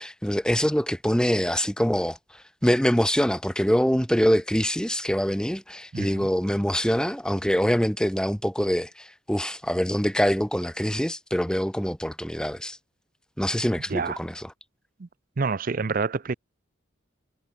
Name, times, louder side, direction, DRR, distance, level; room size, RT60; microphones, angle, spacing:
voice 1, 0.0-12.8 13.4-14.5, equal, 5° left, 1.3 m, -24 dB
voice 2, 5.9-6.3 13.9-14.2 15.0-15.1 15.4-16.3, right 4 dB, 40° right, 0.5 m, -27 dB
head